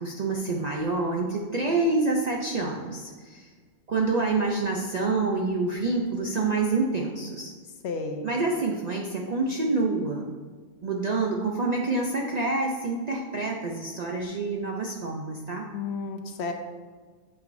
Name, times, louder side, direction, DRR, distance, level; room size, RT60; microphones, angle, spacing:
voice 1, 0.0-3.5 3.9-7.5 8.2-10.2 10.8-15.7, right 3 dB, 55° right, -1 dB, 0.5 m, -27 dB
voice 2, 7.8-8.3 15.7-16.5, left 4 dB, 65° left, 5 dB, 0.8 m, -32 dB
7.0 x 5.5 x 2.6 m, 1.5 s
omnidirectional pair, 1.3 m